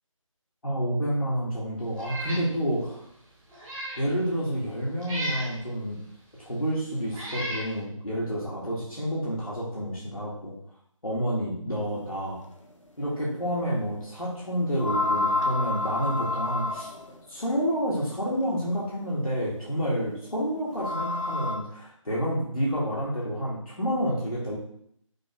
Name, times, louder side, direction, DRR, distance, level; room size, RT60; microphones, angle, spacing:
voice 1, 0.6-3.1 4.0-6.0 6.4-10.6 11.0-12.4 13.0-16.9 17.3-24.6, equal, 85° left, -6 dB, 2.3 m, -29 dB
Meow, 1.9-2.5 2.9-3.0 3.5-4.0 5.0-5.5 6.4-6.5 7.1-7.7, right 1 dB, 5° right, 0.7 m, -34 dB
sound 1, 13.0-13.1 14.8-17.2 19.0-19.1 20.7-21.6, left 2 dB, 65° left, 1.4 m, -28 dB
6.5 x 6.3 x 2.5 m, 0.69 s
figure-of-eight pair, 165°, 17 cm